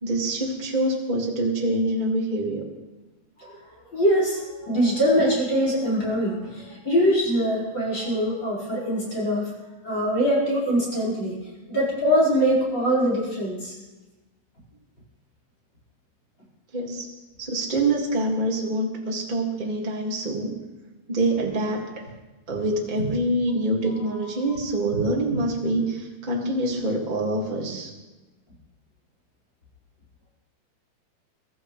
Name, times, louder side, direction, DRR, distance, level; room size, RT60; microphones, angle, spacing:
voice 1, 0.0-2.6 16.7-17.1 17.4-20.5 21.1-21.8 22.5-27.9, right 1 dB, 25° right, -1 dB, 1.0 m, -25 dB
voice 2, 3.4-9.5 9.8-11.4 11.7-13.8 22.5-22.6 23.0-23.1 24.1-24.3 24.9-25.0 25.3-25.4, equal, 30° left, -7 dB, 5.3 m, -23 dB
23.0 x 13.5 x 3.3 m, 1.1 s
omnidirectional pair, 4.5 m